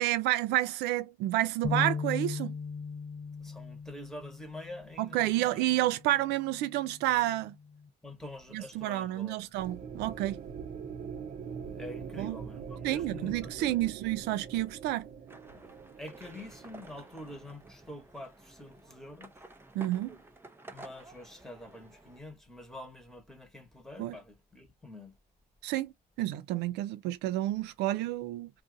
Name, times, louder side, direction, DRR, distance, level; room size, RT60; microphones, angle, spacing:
voice 1, 0.0-2.5 5.0-7.5 8.5-10.4 12.2-12.4 12.8-15.1 19.7-20.2 24.0-24.2 25.6-28.5, right 15 dB, 85° right, 0.4 m, -30 dB
sound 1, 1.6-7.9, left 5 dB, 30° left, 0.5 m, -39 dB
voice 2, 3.4-5.6 8.0-9.5 11.7-13.8 15.5-15.7 16.0-19.3 20.7-25.2, left 1 dB, ahead, 1.2 m, -46 dB
sound 2, 9.6-17.7, right 6 dB, 50° right, 0.7 m, -43 dB
sound 3, 15.3-22.2, right 2 dB, 15° right, 0.6 m, -52 dB
2.6 x 2.5 x 3.7 m
cardioid pair, 110°, 17 cm